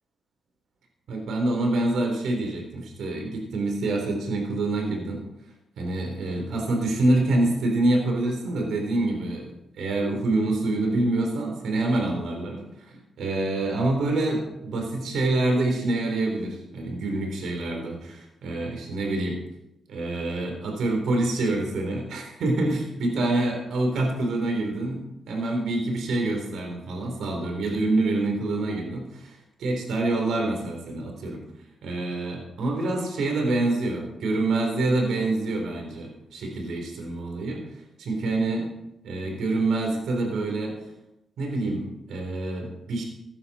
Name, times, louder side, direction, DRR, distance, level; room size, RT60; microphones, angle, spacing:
voice 1, 1.1-5.2 5.8-9.5 9.7-19.4 19.9-31.4 31.8-37.6 38.0-38.7 39.0-40.8 41.4-43.0, right 2 dB, 80° right, 2 dB, 3.7 m, -26 dB
16.0 x 11.5 x 4.3 m, 0.87 s
cardioid pair, 85°, 0 cm